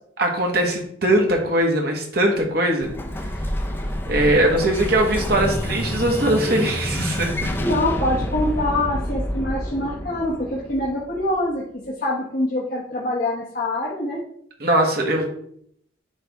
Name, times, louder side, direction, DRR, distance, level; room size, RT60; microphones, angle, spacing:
voice 1, 0.2-2.9 4.1-7.5 14.6-15.3, right 1 dB, 55° right, 1 dB, 1.4 m, -20 dB
Explosion, 2.8-11.5, equal, 10° left, 0.7 m, -28 dB
voice 2, 7.6-14.2, left 1 dB, 50° left, -5 dB, 1.1 m, -25 dB
9.9 x 3.4 x 3.5 m, 0.67 s
head